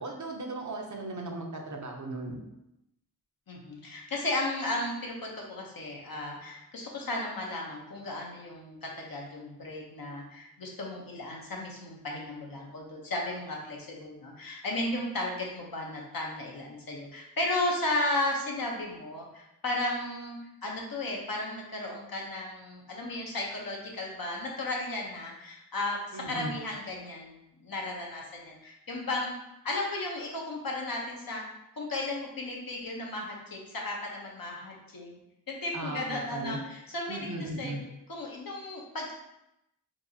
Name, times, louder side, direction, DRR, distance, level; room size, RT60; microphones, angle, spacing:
voice 1, 0.0-2.4 26.1-26.6 35.7-36.6 37.1-37.8, right 2 dB, 55° right, 1 dB, 0.7 m, -37 dB
voice 2, 3.5-29.3 29.6-31.4 31.8-35.2 35.5-37.8 38.1-39.1, left 2 dB, 65° left, -2 dB, 0.9 m, -34 dB
4.5 x 2.5 x 2.7 m, 0.86 s
wide cardioid pair, 55°, 36 cm